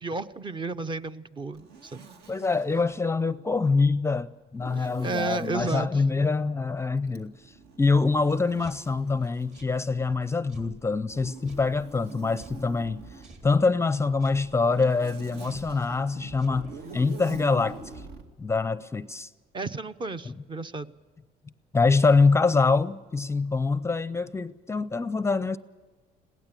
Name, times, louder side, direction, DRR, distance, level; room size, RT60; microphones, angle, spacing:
voice 1, 0.0-2.1 4.8-6.0 19.5-20.9, right 3 dB, 30° right, 0.7 m, -33 dB
Zipper (clothing), 1.5-2.9 4.6-5.7 7.1-10.3 11.1-13.4 14.3-18.3, right 4 dB, 75° right, 2.3 m, -45 dB
voice 2, 2.3-13.0 13.4-17.8 18.4-19.3 20.3-20.4 21.7-25.6, left 4 dB, 15° left, 0.5 m, -25 dB
sound 1, 8.3-17.2, right 3 dB, 45° right, 3.7 m, -53 dB
22.0 x 17.0 x 7.5 m
cardioid pair, 110°, 17 cm